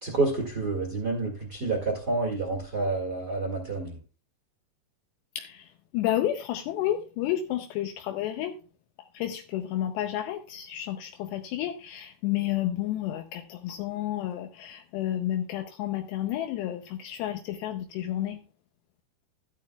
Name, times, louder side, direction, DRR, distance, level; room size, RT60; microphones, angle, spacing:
voice 1, 0.0-4.0, right 3 dB, 45° right, 1 dB, 1.3 m, -29 dB
voice 2, 5.4-8.6 9.1-18.4, left 12 dB, 80° left, 6 dB, 2.7 m, -31 dB
13.0 x 11.0 x 2.3 m, 0.35 s
omnidirectional pair, 5.1 m